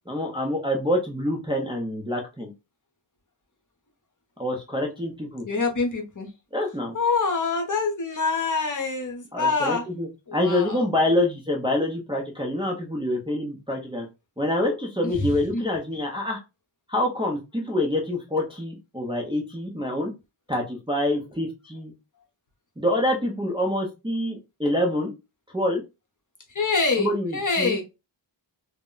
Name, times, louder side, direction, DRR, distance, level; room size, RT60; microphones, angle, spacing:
voice 1, 0.1-2.5 4.4-5.5 6.5-6.9 9.3-14.1 14.4-16.4 16.9-20.1 20.5-21.9 22.8-25.1 25.5-25.8 27.0-27.8, left 1 dB, 10° right, -1 dB, 0.5 m, -26 dB
voice 2, 5.5-6.3 6.9-9.8 10.3-10.8 15.0-15.6 26.5-27.8, left 4 dB, 40° left, 2 dB, 0.8 m, -25 dB
2.1 x 2.0 x 3.7 m, 0.26 s
wide cardioid pair, 100°, 48 cm